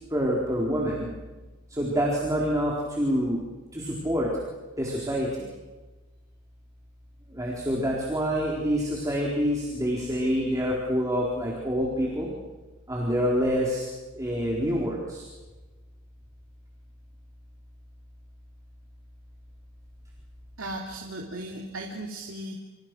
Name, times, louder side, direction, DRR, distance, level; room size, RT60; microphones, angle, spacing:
voice 1, 0.1-1.1 1.8-3.4 3.7-4.3 4.8-5.5 7.3-12.3 12.9-13.8 14.2-15.2, equal, 15° right, -3 dB, 4.2 m, -26 dB
voice 2, 20.6-22.5, right 1 dB, 75° right, -1 dB, 3.3 m, -36 dB
29.0 x 27.0 x 6.3 m, 1.2 s
head